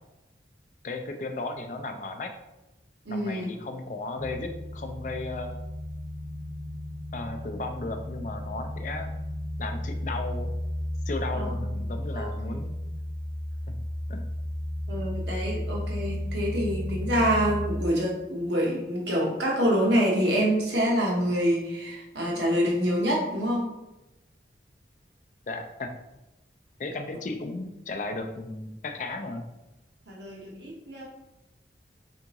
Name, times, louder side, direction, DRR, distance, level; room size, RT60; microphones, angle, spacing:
voice 1, 0.8-2.3 3.1-5.6 7.1-9.1 9.6-10.5 11.1-12.8 13.7-13.8 14.1-14.2 25.5-25.9 26.8-29.5, left 2 dB, 45° left, 5 dB, 0.4 m, -35 dB
voice 2, 3.1-3.5 11.3-11.7 12.1-12.6 14.9-23.7 30.1-31.0, equal, 75° right, -2 dB, 1.0 m, -26 dB
sound 1, 4.2-17.9, left 1 dB, 5° right, 0.7 m, -33 dB
3.6 x 3.5 x 2.9 m, 0.95 s
head